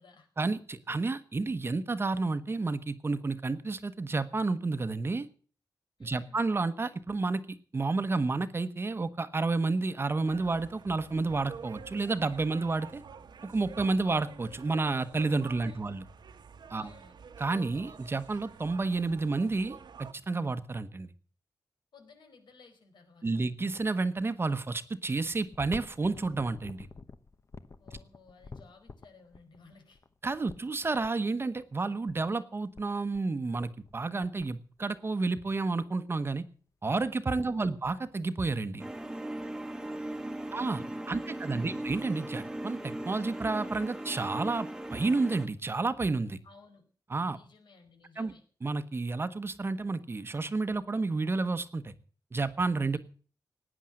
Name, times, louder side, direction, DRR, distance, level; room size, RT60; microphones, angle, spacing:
voice 1, 0.4-5.3 6.0-13.0 13.4-16.0 16.7-16.9 17.4-21.1 23.2-26.9 30.2-36.4 36.8-38.9 40.5-46.4 47.1-47.4 48.2-48.3 48.6-51.9 52.3-53.0, right 3 dB, 30° right, 12 dB, 1.1 m, -30 dB
voice 2, 6.0-6.4 15.6-15.9 16.7-17.2 21.9-23.2 27.8-30.0 37.4-37.8 39.8-41.8 46.4-46.8 47.3-48.4 52.9-53.0, left 4 dB, 90° left, 5 dB, 4.9 m, -58 dB
sound 1, 10.3-20.1, right 6 dB, 75° right, 1.3 m, -49 dB
sound 2, 25.4-31.1 32.0-32.1 32.4-32.5 32.7-33.3 33.6-34.0 34.2-35.1 35.7-35.8 36.2-36.5 36.8-36.9 37.1-37.7 38.2-39.0 39.4-39.5 40.4-40.5, left 4 dB, 40° left, 1.0 m, -49 dB
sound 3, 38.8-45.5, right 1 dB, 5° right, 1.3 m, -38 dB
17.5 x 9.9 x 7.7 m, 0.43 s
wide cardioid pair, 160°, 8 cm